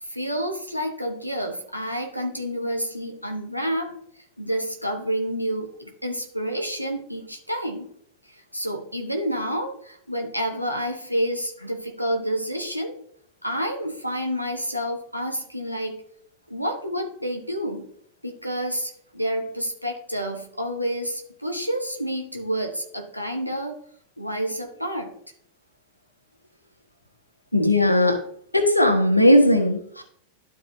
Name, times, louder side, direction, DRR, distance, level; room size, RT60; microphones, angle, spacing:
voice 1, 0.0-3.9 4.4-7.9 8.5-13.0 13.4-16.0 16.5-17.9 18.2-23.8 24.2-25.1, equal, 90° right, 2 dB, 1.0 m, -29 dB
voice 2, 27.5-28.2 28.5-30.0, left 1 dB, 85° left, 4 dB, 1.2 m, -18 dB
12.0 x 4.7 x 2.7 m, 0.65 s
figure-of-eight pair, 90°, 0 cm